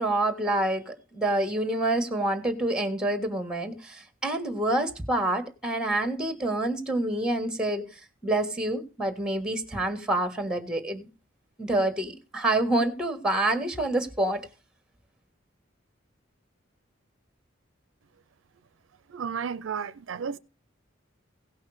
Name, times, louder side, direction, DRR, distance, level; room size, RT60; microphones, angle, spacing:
voice 1, 0.0-7.9 8.2-11.1 11.6-14.4, right 1 dB, 5° right, 1.5 m, -27 dB
voice 2, 19.1-20.4, right 6 dB, 75° right, 0.5 m, -33 dB
16.5 x 5.6 x 4.8 m
head